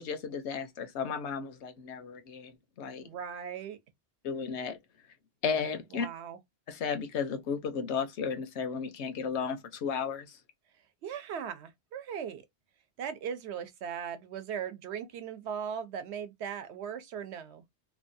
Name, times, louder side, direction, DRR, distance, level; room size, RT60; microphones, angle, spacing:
voice 1, 0.0-2.5 2.8-3.0 4.2-4.8 5.4-6.1 6.7-10.3, left 6 dB, 90° left, 1.0 m, -34 dB
voice 2, 3.0-3.8 5.9-6.4 11.0-12.4 13.0-17.6, right 8 dB, 80° right, 0.9 m, -38 dB
2.9 x 2.2 x 2.6 m
omnidirectional pair, 1.1 m